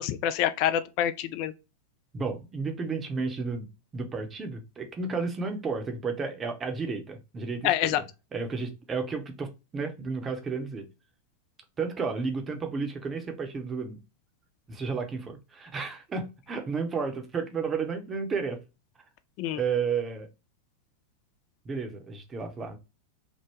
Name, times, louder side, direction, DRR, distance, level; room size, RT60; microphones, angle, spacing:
voice 1, 0.0-1.5 7.6-8.0 19.4-19.6, left 11 dB, 45° left, 0.3 m, -26 dB
voice 2, 2.1-8.0 8.3-10.9 11.8-14.0 14.7-18.6 19.6-20.3 21.6-22.8, right 5 dB, 20° right, 0.7 m, -32 dB
3.5 x 2.1 x 2.9 m
figure-of-eight pair, 90°, 0 cm